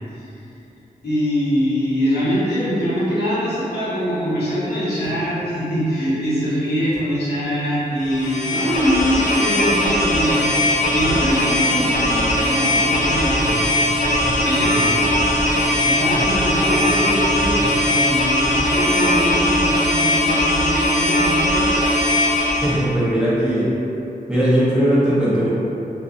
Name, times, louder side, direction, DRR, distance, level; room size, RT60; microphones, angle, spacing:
voice 1, 1.0-13.6 14.4-15.1 15.5-21.7, equal, 85° left, -11 dB, 0.9 m, -23 dB
sound 1, 5.0-5.2 6.9-7.1 9.0-9.2 10.9-11.3 12.5-12.7 14.1-14.6 16.1-16.3 17.5-17.8 19.6-19.8, equal, 10° left, 0.9 m, -34 dB
sound 2, 8.0-22.8, left 1 dB, 50° left, 0.4 m, -19 dB
sound 3, 8.5-18.7, equal, 65° right, 1.0 m, -35 dB
voice 2, 22.5-23.7 24.3-25.5, equal, 5° right, -10 dB, 0.6 m, -18 dB
2.5 x 2.2 x 2.5 m, 2.9 s
wide cardioid pair, 135°, 16 cm